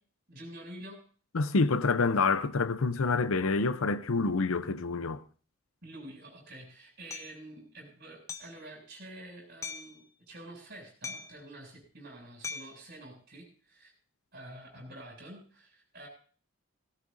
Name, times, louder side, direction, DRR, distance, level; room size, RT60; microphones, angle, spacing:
voice 1, 0.3-1.0 5.8-13.9 14.3-16.1, right 1 dB, 45° right, 7.6 m, -48 dB
voice 2, 1.3-5.2, left 3 dB, 75° left, 0.7 m, -27 dB
Hammer, 7.1-7.3 8.3-8.6 9.6-10.0 11.0-11.4 12.4-12.8, left 5 dB, 15° left, 0.7 m, -40 dB
18.0 x 17.5 x 2.6 m
head